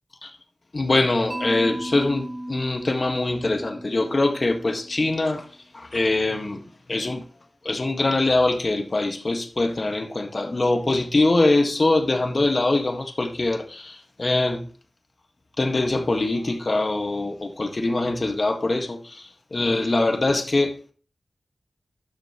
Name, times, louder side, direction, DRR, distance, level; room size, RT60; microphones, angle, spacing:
voice 1, 0.7-5.5 5.7-7.2 7.6-14.7 15.6-20.9, left 2 dB, 50° left, 1.8 m, -23 dB
Mallet percussion, 1.3-5.3, right 1 dB, 30° right, 1.7 m, -36 dB
11.5 x 6.3 x 3.1 m
wide cardioid pair, 55°, 0 cm